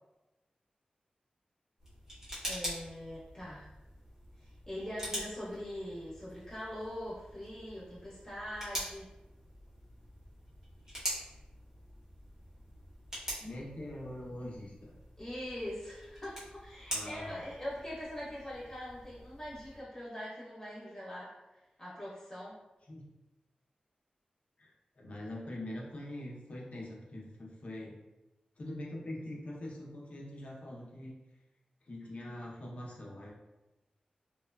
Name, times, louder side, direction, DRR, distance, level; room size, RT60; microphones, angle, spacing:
sound 1, 1.8-19.8, equal, 20° right, 0.9 m, -45 dB
voice 1, 2.5-3.7 4.4-9.1 15.2-21.3 21.8-22.6, left 1 dB, 25° left, -9 dB, 1.0 m, -42 dB
voice 2, 13.4-15.0 16.9-17.5 22.9-23.0 24.6-24.7 25.0-28.0 28.6-31.1 31.9-33.3, left 1 dB, 55° left, -3 dB, 0.6 m, -43 dB
3.0 x 2.2 x 2.2 m, 1.1 s
wide cardioid pair, 105°, 3 cm